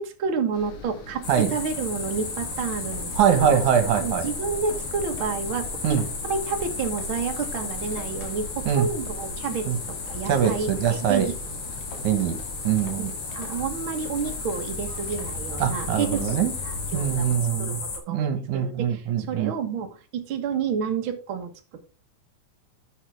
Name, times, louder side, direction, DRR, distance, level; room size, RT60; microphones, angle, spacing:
voice 1, 0.0-3.6 3.9-11.3 13.0-16.4 16.6-21.8, right 6 dB, 50° right, 4 dB, 1.9 m, -30 dB
sound 1, 0.5-17.4, left 3 dB, 75° left, 3.3 m, -41 dB
sound 2, 1.2-18.0, left 3 dB, 55° left, 3.7 m, -34 dB
voice 2, 3.2-4.3 5.8-6.0 8.7-8.9 9.7-9.8 10.3-11.3 12.0-12.4 12.6-13.1 15.6-16.5 16.9-17.8 18.1-19.5, right 8 dB, 75° right, 7 dB, 2.8 m, -23 dB
11.0 x 6.7 x 3.6 m, 0.35 s
omnidirectional pair, 3.5 m